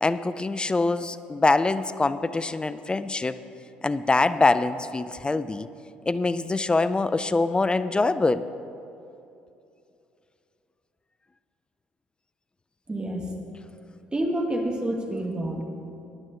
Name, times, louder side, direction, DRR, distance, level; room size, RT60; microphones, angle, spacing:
voice 1, 0.0-3.4 3.8-5.7 6.1-8.5, left 3 dB, 20° left, 14 dB, 0.5 m, -24 dB
voice 2, 12.9-13.3 14.1-15.6, right 1 dB, 20° right, 2 dB, 1.8 m, -28 dB
18.0 x 10.5 x 3.9 m, 2.7 s
figure-of-eight pair, 55°, 5 cm